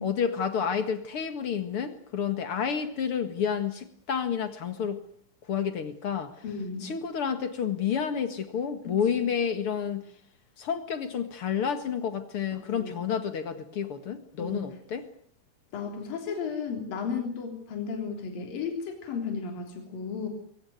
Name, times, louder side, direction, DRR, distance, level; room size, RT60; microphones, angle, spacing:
voice 1, 0.0-5.0 5.5-6.3 6.8-10.0 10.6-15.0, left 7 dB, 45° left, 9 dB, 2.0 m, -30 dB
voice 2, 6.4-6.9 8.8-9.2 12.5-13.1 14.4-14.7 15.7-20.3, left 5 dB, 65° left, 3 dB, 5.2 m, -34 dB
22.5 x 18.0 x 9.4 m, 0.62 s
omnidirectional pair, 4.3 m